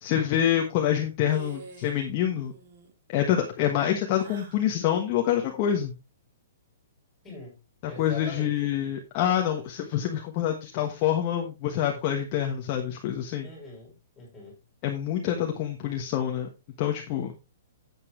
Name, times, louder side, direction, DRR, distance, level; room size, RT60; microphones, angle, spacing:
voice 1, 0.0-2.5 3.1-5.9 7.8-13.5 14.8-16.5 16.8-17.3, left 10 dB, 25° left, 1.3 m, -26 dB
sound 1, 1.2-2.1 2.4-2.9 4.1-4.7, right 5 dB, 45° right, 2.7 m, -47 dB
voice 2, 7.2-7.6 7.9-8.7 13.4-14.6, left 3 dB, 5° left, 5.9 m, -42 dB
11.0 x 8.4 x 3.2 m
hypercardioid pair, 175°, 0 cm